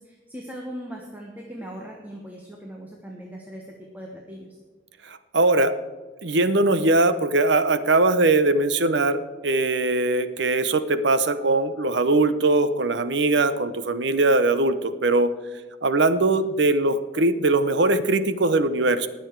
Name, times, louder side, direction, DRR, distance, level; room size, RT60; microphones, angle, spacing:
voice 1, 0.0-4.6, equal, 10° right, 0 dB, 1.3 m, -39 dB
voice 2, 5.0-5.7 6.2-15.3 15.8-19.1, right 2 dB, 65° right, 13 dB, 0.8 m, -21 dB
20.0 x 7.2 x 4.6 m, 1.4 s
head